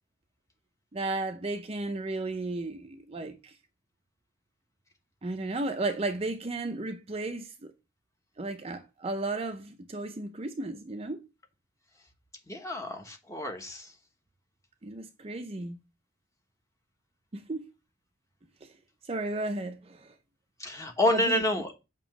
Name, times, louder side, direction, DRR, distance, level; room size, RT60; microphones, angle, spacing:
voice 1, 0.9-3.5 5.2-7.7 8.4-11.3 14.8-15.8 17.3-17.7 18.6-18.7 19.1-20.1 21.1-21.4, right 2 dB, 30° right, 0.5 m, -34 dB
voice 2, 12.5-13.9 20.6-21.7, left 1 dB, 15° left, 1.1 m, -28 dB
7.0 x 3.0 x 5.9 m
head